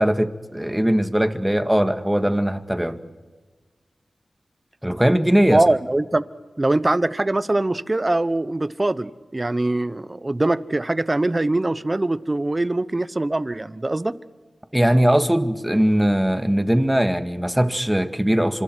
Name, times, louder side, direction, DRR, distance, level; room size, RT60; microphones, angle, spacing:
voice 1, 0.0-3.0 4.8-5.7 14.7-18.6, equal, 10° right, 8 dB, 1.8 m, -20 dB
voice 2, 5.5-6.2 6.6-14.2, right 2 dB, 35° right, 15 dB, 1.0 m, -22 dB
29.5 x 26.0 x 4.7 m, 1.4 s
cardioid pair, 45°, 0 cm